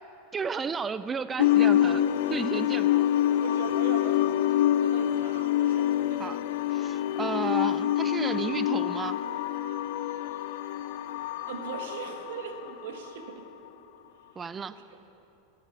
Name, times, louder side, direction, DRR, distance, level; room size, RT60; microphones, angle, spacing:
voice 1, 0.3-2.0 2.3-3.0 6.2-6.4 6.7-9.2 14.4-14.7, right 5 dB, 20° right, 14 dB, 0.4 m, -33 dB
sound 1, 1.4-13.3, left 12 dB, 70° left, 0.5 m, -26 dB
voice 2, 2.3-2.7 3.4-6.4 6.8-7.0 11.5-13.5 14.4-14.5 14.8-15.0, right 6 dB, 80° right, 5 dB, 1.7 m, -40 dB
14.0 x 7.5 x 9.5 m, 2.9 s
supercardioid pair, 130°, 0 cm